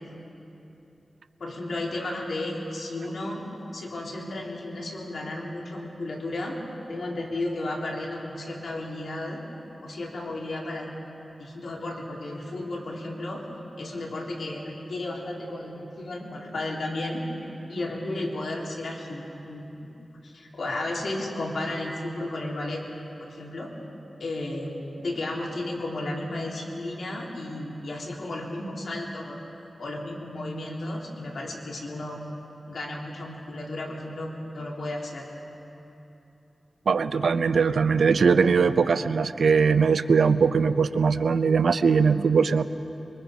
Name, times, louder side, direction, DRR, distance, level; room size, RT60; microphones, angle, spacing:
voice 1, 1.4-3.4 3.7-6.6 6.9-9.4 9.8-10.9 11.4-13.4 13.8-17.2 17.7-19.7 20.2-22.8 23.2-23.7 24.2-29.4 29.8-32.2 32.7-35.3, left 2 dB, 80° left, -2 dB, 3.5 m, -33 dB
voice 2, 36.9-42.6, right 5 dB, 90° right, 12 dB, 0.6 m, -21 dB
25.0 x 23.5 x 5.2 m, 3.0 s
wide cardioid pair, 80°, 0 cm